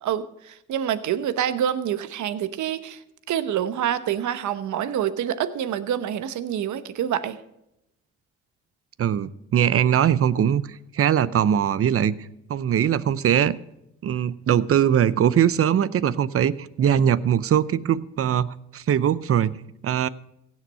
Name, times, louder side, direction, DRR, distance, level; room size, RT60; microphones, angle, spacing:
voice 1, 0.0-3.0 3.3-7.4, right 10 dB, 75° right, 14 dB, 1.0 m, -27 dB
voice 2, 9.0-12.2 12.5-13.6 14.0-19.6 19.8-20.1, right 9 dB, 50° right, 19 dB, 0.7 m, -21 dB
16.5 x 7.4 x 5.6 m, 0.84 s
cardioid pair, 90°, 30 cm